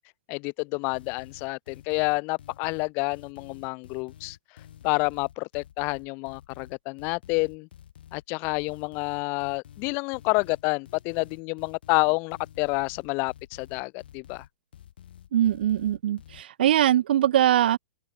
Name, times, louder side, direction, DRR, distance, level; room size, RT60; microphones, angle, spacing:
voice 1, 0.3-4.4 4.8-7.7 8.1-14.4, left 30 dB, 40° left, 1.2 m, -28 dB
sound 1, 0.9-16.4, left 10 dB, 75° left, 4.0 m, -49 dB
voice 2, 15.3-17.8, right 11 dB, 75° right, 0.5 m, -22 dB
open air
hypercardioid pair, 135°, 5 cm